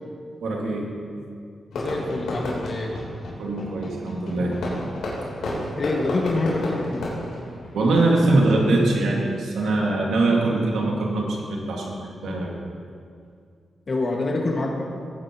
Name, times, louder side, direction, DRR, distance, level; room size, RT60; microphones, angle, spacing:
voice 1, 0.4-0.9 3.4-4.7 7.5-12.6, right 2 dB, 85° right, -1 dB, 2.0 m, -22 dB
Fireworks, 1.7-8.2, left 1 dB, 90° left, 3.4 m, -32 dB
voice 2, 1.7-2.9 5.8-7.1 13.9-14.9, left 2 dB, 45° left, 0 dB, 1.8 m, -26 dB
18.5 x 9.5 x 3.0 m, 2.3 s
cardioid pair, 75°, 0 cm